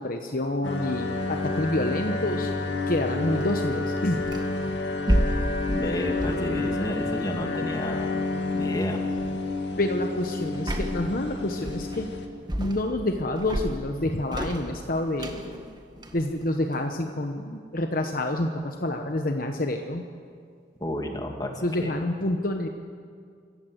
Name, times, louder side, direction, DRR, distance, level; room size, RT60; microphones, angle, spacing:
voice 1, 0.0-2.5 2.9-4.2 9.8-12.1 12.6-15.8 16.1-20.0 21.6-22.7, left 1 dB, 50° left, 5 dB, 1.0 m, -28 dB
sound 1, 0.6-12.3, left 3 dB, 75° left, 2.0 m, -30 dB
sound 2, 3.3-4.6 5.1-7.5 8.5-8.8 9.2-9.5 10.5-11.2 11.7-12.2 12.5-13.1 13.4-17.0, equal, 25° right, 1.5 m, -31 dB
voice 2, 5.7-8.1 8.5-9.0 20.8-21.9, left 1 dB, 20° left, 2 dB, 2.2 m, -31 dB
25.5 x 14.5 x 7.9 m, 2.2 s
head